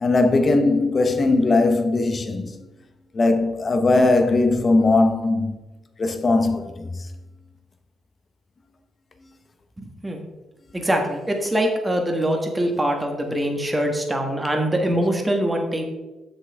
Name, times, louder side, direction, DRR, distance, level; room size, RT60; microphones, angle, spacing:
voice 1, 0.0-2.5 3.1-5.5 6.0-6.9, left 3 dB, 35° left, 0.9 m, -19 dB
voice 2, 9.8-10.2 10.7-15.9, right 1 dB, 15° right, 1.5 m, -23 dB
7.2 x 6.6 x 3.6 m
cardioid pair, 90°, 0 cm